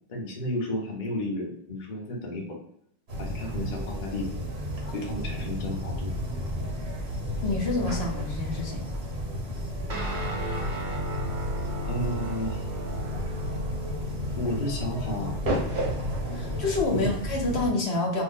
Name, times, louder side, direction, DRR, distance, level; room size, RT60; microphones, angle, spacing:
voice 1, 0.1-2.6 3.2-4.3 4.9-6.1 11.9-12.7 14.4-15.4 16.9-17.1, left 1 dB, 50° left, -1 dB, 0.9 m, -32 dB
sound 1, 3.1-17.7, equal, 85° right, 1.2 m, -32 dB
voice 2, 7.4-8.8 16.3-18.2, left 2 dB, 85° left, 0 dB, 1.2 m, -28 dB
Guitar, 9.9-17.6, left 1 dB, 50° right, 0.8 m, -36 dB
2.7 x 2.5 x 3.6 m, 0.72 s
omnidirectional pair, 1.1 m